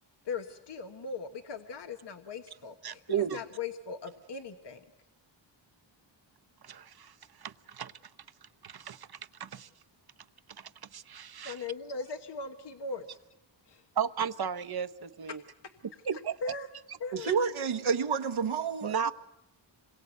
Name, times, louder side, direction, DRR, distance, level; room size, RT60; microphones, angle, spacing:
voice 1, 0.2-4.8 11.4-13.2 13.7-13.8 15.3-15.4 16.4-16.7 17.0-17.4, left 4 dB, 60° left, 6 dB, 1.4 m, -39 dB
voice 2, 2.8-3.4 6.6-7.1 7.4-7.9 8.6-9.1 9.4-9.7 10.6-11.6 14.0-15.4 16.1-16.4 18.8-19.1, right 8 dB, 50° right, 11 dB, 0.9 m, -34 dB
voice 3, 17.1-19.1, right 6 dB, 90° right, 4 dB, 1.4 m, -29 dB
27.0 x 22.0 x 8.2 m, 0.91 s
wide cardioid pair, 155°, 47 cm